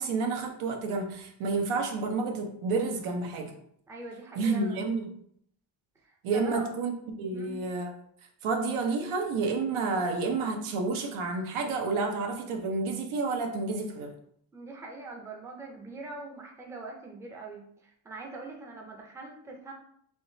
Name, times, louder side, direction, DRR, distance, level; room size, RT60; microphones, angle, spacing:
voice 1, 0.0-3.5 4.4-5.1 6.2-6.9 7.2-7.9 8.4-14.1, right 3 dB, 90° right, 3 dB, 0.9 m, -30 dB
voice 2, 3.9-4.8 6.0-6.7 7.3-7.6 14.5-19.7, right 3 dB, 5° right, 0 dB, 0.4 m, -43 dB
3.7 x 3.0 x 2.6 m, 0.67 s
cardioid pair, 140°, 47 cm